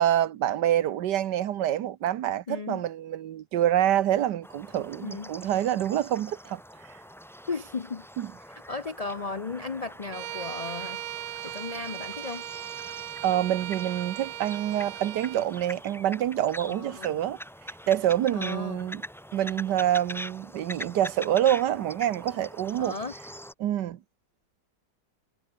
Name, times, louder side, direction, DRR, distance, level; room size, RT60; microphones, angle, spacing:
voice 1, 0.0-6.6 8.2-8.3 13.2-17.4 17.9-19.0 19.3-23.0 23.6-24.0, right 11 dB, 85° right, 1.5 m, -26 dB
voice 2, 2.5-2.8 5.0-5.3 7.5-8.1 8.5-11.0 11.4-12.4 16.7-17.2 18.3-18.9 22.8-23.2, left 4 dB, 65° left, 0.3 m, -35 dB
sound 1, 4.4-23.5, equal, ahead, 3.2 m, -43 dB
Bowed string instrument, 10.1-15.5, right 13 dB, 65° right, 0.9 m, -38 dB
omnidirectional pair, 1.8 m